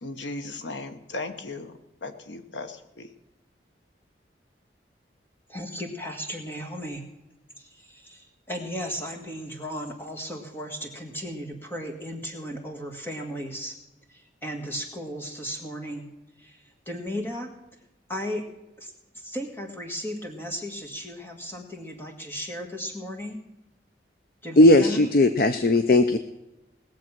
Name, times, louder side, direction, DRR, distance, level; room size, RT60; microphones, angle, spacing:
voice 1, 0.0-1.7 2.0-3.1, left 2 dB, 85° left, 8 dB, 1.1 m, -36 dB
voice 2, 5.5-7.1 7.6-13.8 14.1-16.1 16.4-17.6 18.1-18.5 18.8-23.4 24.4-25.0, equal, 10° left, 2 dB, 1.7 m, -35 dB
voice 3, 24.6-26.2, left 2 dB, 50° left, 10 dB, 0.5 m, -17 dB
19.0 x 7.4 x 6.0 m, 0.96 s
head